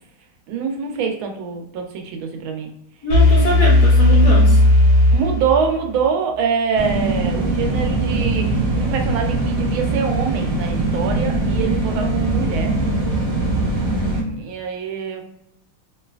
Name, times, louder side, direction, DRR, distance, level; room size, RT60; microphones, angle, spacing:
voice 1, 0.5-2.7 3.4-3.7 5.1-8.5 8.7-12.8 14.1-15.2, right 6 dB, 80° right, 3 dB, 1.4 m, -24 dB
voice 2, 3.0-4.6, left 1 dB, 70° left, -3 dB, 0.9 m, -22 dB
sound 1, 3.1-6.0, left 1 dB, 40° left, 0.9 m, -14 dB
sound 2, 6.7-14.2, right 2 dB, 55° right, 0.6 m, -21 dB
3.2 x 2.7 x 2.3 m, 0.77 s
omnidirectional pair, 2.3 m